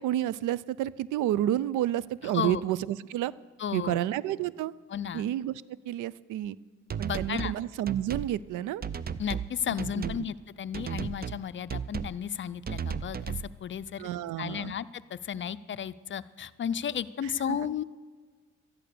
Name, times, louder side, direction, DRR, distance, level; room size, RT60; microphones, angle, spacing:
voice 1, 0.0-3.3 3.7-4.7 5.1-6.6 7.0-8.8 9.7-10.1 14.0-14.7 17.5-17.6, right 12 dB, 85° right, 21 dB, 0.5 m, -30 dB
voice 2, 2.2-2.6 3.6-4.0 4.9-5.3 7.0-7.6 9.2-14.1 14.4-17.8, left 8 dB, 40° left, 15 dB, 0.5 m, -34 dB
sound 1, 6.9-7.6 7.9-8.3 8.8-9.5 9.8-10.2 10.7-11.4 11.7-12.2 12.7-13.5, right 7 dB, 30° right, 0.5 m, -34 dB
13.5 x 11.0 x 6.7 m, 1.5 s
cardioid pair, 90°, 30 cm